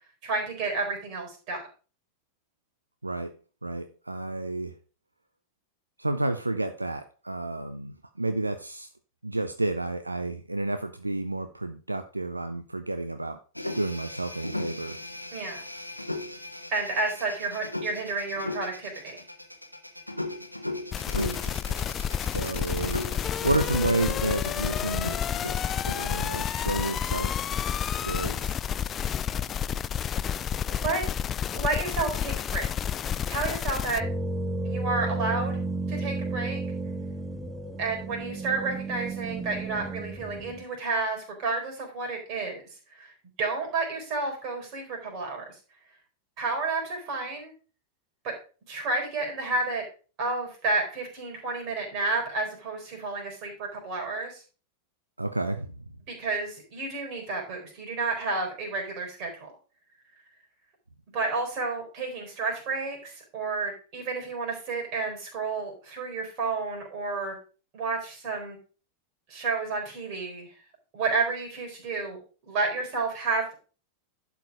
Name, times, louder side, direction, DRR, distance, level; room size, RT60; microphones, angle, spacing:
voice 1, 0.2-1.6 15.3-15.6 16.7-19.2 29.2-29.4 30.7-31.0 31.5-32.7 33.3-34.0 34.6-35.6 35.9-36.6 37.8-42.6 42.9-43.1 43.4-45.4 46.4-47.5 48.2-48.3 48.7-49.8 50.2-54.4 56.1-59.5 61.1-67.4 67.7-68.6 69.3-70.5 70.9-72.2 72.5-73.5, right 3 dB, 40° right, 2 dB, 4.2 m, -31 dB
voice 2, 3.0-3.4 3.6-4.8 6.0-8.9 9.2-13.4 13.7-15.1 21.1-21.8 22.3-23.0 23.4-25.2 25.9-27.4 28.0-28.6 55.2-55.8, right 2 dB, 85° right, 9 dB, 0.5 m, -31 dB
sound 1, 13.6-27.1, left 2 dB, 90° left, 1.0 m, -38 dB
sound 2, 20.9-34.0, left 8 dB, 25° left, 0.3 m, -30 dB
sound 3, 34.0-40.6, right 2 dB, 10° right, 0.9 m, -32 dB
11.5 x 4.8 x 4.8 m, 0.36 s
figure-of-eight pair, 90°, 0 cm